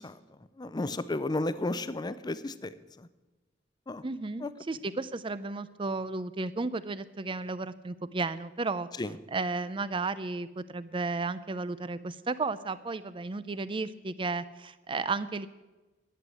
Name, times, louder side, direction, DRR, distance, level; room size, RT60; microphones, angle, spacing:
voice 1, 0.0-3.1 3.9-4.0 4.4-4.5 9.0-9.2, left 2 dB, 25° left, 14 dB, 0.5 m, -34 dB
voice 2, 4.0-8.9 9.3-15.5, right 3 dB, 30° right, 15 dB, 0.5 m, -33 dB
11.0 x 8.0 x 8.4 m, 1.1 s
head